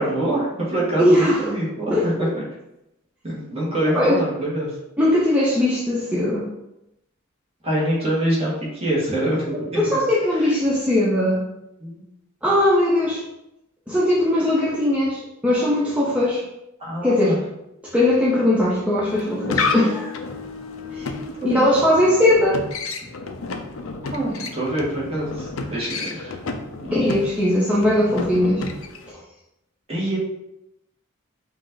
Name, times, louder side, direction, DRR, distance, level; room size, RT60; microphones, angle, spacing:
voice 1, 0.0-2.4 3.2-4.8 7.6-10.0 10.4-10.5 11.8-12.0 16.8-17.4 21.4-21.6 24.1-26.4 26.8-27.0 29.9-30.2, right 1 dB, 30° right, -6 dB, 1.6 m, -25 dB
voice 2, 1.0-1.4 1.9-2.3 3.9-4.2 5.0-6.5 9.7-11.5 12.4-13.2 13.9-16.4 17.0-17.4 17.8-20.2 20.9-21.1 21.4-22.6 26.9-28.7, left 1 dB, 5° right, -6 dB, 0.6 m, -19 dB
sound 1, 19.1-29.1, left 4 dB, 75° left, 0.5 m, -31 dB
5.3 x 2.6 x 3.8 m, 0.87 s
head